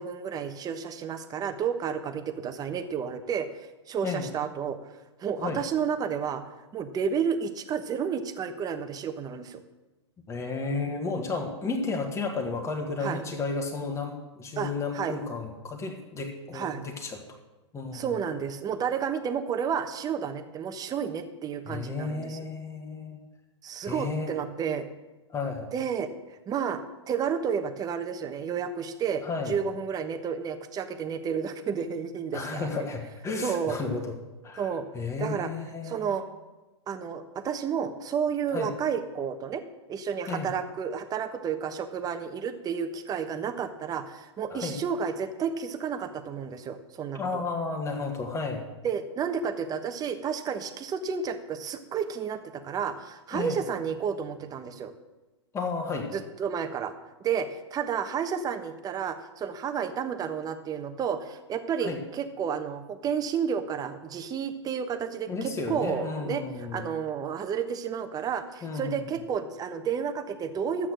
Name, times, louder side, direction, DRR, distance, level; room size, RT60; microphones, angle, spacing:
voice 1, 0.0-4.8 5.2-6.4 6.7-9.6 13.0-13.2 14.6-15.1 16.5-16.8 17.9-22.4 23.6-24.8 25.7-26.1 26.5-26.8 27.1-32.9 33.4-33.7 34.6-34.8 35.2-35.5 35.8-36.2 36.9-39.6 39.9-47.4 48.8-54.9 56.1-56.9 57.2-66.4 66.7-70.9, right 7 dB, 25° right, 8 dB, 1.2 m, -31 dB
voice 2, 10.3-17.2 17.7-18.1 21.7-23.2 23.8-24.3 25.3-25.7 29.2-29.5 32.3-34.1 34.4-34.7 34.9-36.1 38.5-38.7 40.3-40.5 44.5-44.8 47.1-48.7 53.3-53.6 55.5-56.1 61.8-62.0 65.3-66.9 68.6-69.0, left 4 dB, 20° left, 2 dB, 1.7 m, -32 dB
12.0 x 8.6 x 6.3 m, 1.1 s
hypercardioid pair, 110°, 15 cm